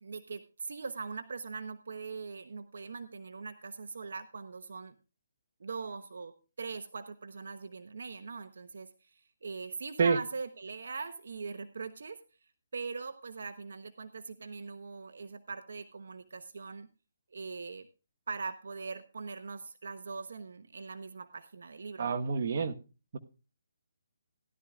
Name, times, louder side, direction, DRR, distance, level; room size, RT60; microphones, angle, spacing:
voice 1, 0.0-5.0 5.6-12.2 12.7-16.9 17.3-17.9 18.3-22.1, right 4 dB, 70° right, 10 dB, 0.9 m, -41 dB
voice 2, 22.0-22.7, right 5 dB, 50° right, 7 dB, 1.2 m, -27 dB
16.5 x 11.5 x 2.4 m, 0.32 s
hypercardioid pair, 160°, 0 cm